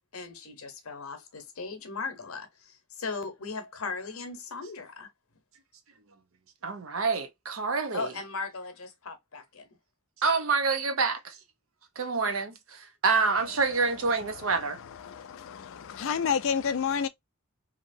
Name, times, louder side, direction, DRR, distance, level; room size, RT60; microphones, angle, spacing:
voice 1, 0.1-5.1 7.9-9.7, left 4 dB, 85° left, 0.8 m, -38 dB
voice 2, 6.6-8.1 10.2-11.4 12.0-14.8, right 4 dB, 70° right, 0.7 m, -27 dB
voice 3, 15.0-17.1, left 7 dB, 65° left, 0.4 m, -29 dB
2.9 x 2.8 x 2.5 m
head